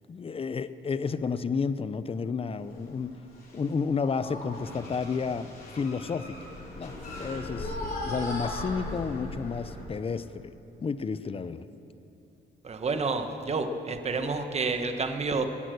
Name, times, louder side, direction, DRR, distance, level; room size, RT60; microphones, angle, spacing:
voice 1, 0.1-3.1 3.5-6.4 6.8-10.5 10.8-11.7, left 5 dB, 30° left, 14 dB, 0.6 m, -31 dB
sound 1, 2.6-3.0 3.3-3.7 4.0-9.8, left 1 dB, 50° left, 4.6 m, -38 dB
voice 2, 12.6-15.4, right 4 dB, 35° right, 7 dB, 1.2 m, -29 dB
20.5 x 9.1 x 6.4 m, 2.9 s
cardioid pair, 90°, 20 cm